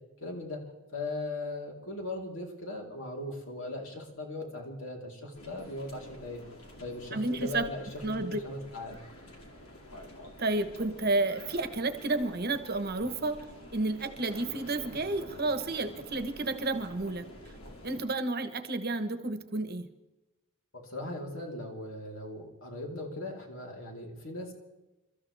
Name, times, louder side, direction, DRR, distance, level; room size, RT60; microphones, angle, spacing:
voice 1, 0.2-0.6 0.9-6.4 6.8-9.0 20.7-24.5, left 2 dB, 65° left, 0 dB, 3.7 m, -39 dB
sound 1, 5.3-18.1, left 1 dB, 85° left, 2.6 m, -48 dB
voice 2, 7.1-7.7 8.0-8.4 10.4-13.4 13.7-17.3 17.8-19.9, right 2 dB, 45° right, 9 dB, 1.1 m, -31 dB
29.0 x 14.0 x 3.4 m, 1.0 s
head